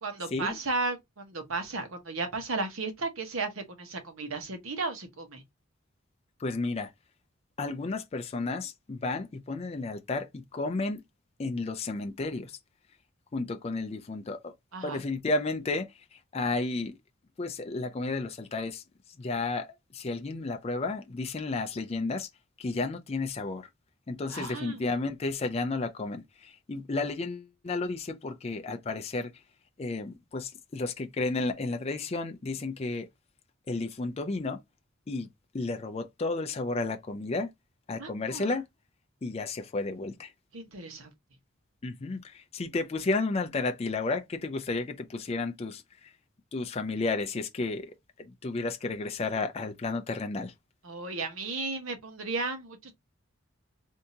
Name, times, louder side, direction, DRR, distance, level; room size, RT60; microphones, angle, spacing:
voice 1, 0.0-5.4 14.7-15.0 24.3-24.8 38.0-38.5 40.5-41.1 50.8-52.9, right 3 dB, 80° right, 1.1 m, -34 dB
voice 2, 6.4-6.9 7.6-11.0 11.4-12.6 13.3-14.5 14.8-16.9 17.4-18.8 19.2-22.3 22.6-23.7 24.1-29.3 29.8-33.1 33.7-34.6 35.1-35.3 35.5-37.5 37.9-38.7 39.2-40.3 41.8-46.1 46.5-47.9 48.2-50.5, left 3 dB, 30° left, 0.4 m, -32 dB
3.5 x 2.7 x 2.7 m
head